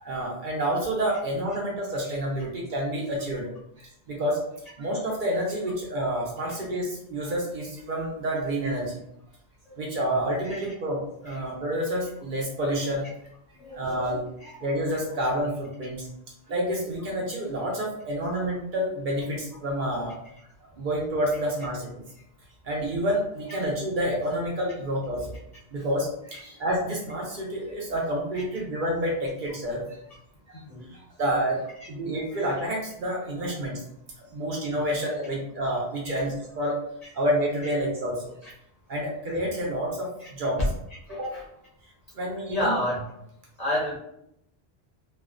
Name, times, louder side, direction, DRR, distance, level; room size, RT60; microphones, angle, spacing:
voice 1, 0.0-3.5 3.8-4.4 4.8-9.0 9.8-13.0 13.7-16.1 16.5-20.1 20.8-22.0 22.6-25.3 25.7-30.0 30.5-30.6 30.9-31.6 31.9-33.8 34.3-36.8 37.1-38.2 38.9-40.6 41.1-41.3 42.1-42.7, equal, 60° right, -2 dB, 0.7 m, -29 dB
voice 2, 13.5-13.9 14.4-14.5 26.3-26.4 30.6-30.9 34.7-34.8 36.0-36.2 38.4-38.5 40.2-40.3 41.1-41.4 42.5-43.1 43.6-44.0, left 1 dB, 45° left, -4 dB, 0.6 m, -30 dB
2.4 x 2.1 x 2.4 m, 0.76 s
omnidirectional pair, 1.1 m